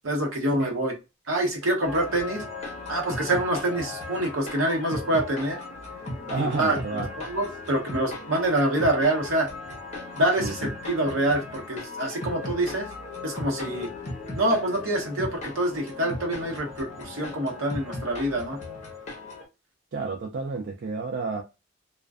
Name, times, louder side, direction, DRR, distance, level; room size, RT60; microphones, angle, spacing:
voice 1, 0.0-0.9 1.3-2.4 2.9-5.6 6.3-9.5 10.2-12.9 13.2-13.9 14.3-18.6, right 1 dB, 70° right, 0.8 m, -26 dB
sound 1, 1.8-19.4, left 2 dB, 30° left, 0.7 m, -37 dB
voice 2, 6.3-7.1 10.4-10.5 19.9-21.4, right 4 dB, 50° right, 0.3 m, -30 dB
2.4 x 2.2 x 2.3 m
head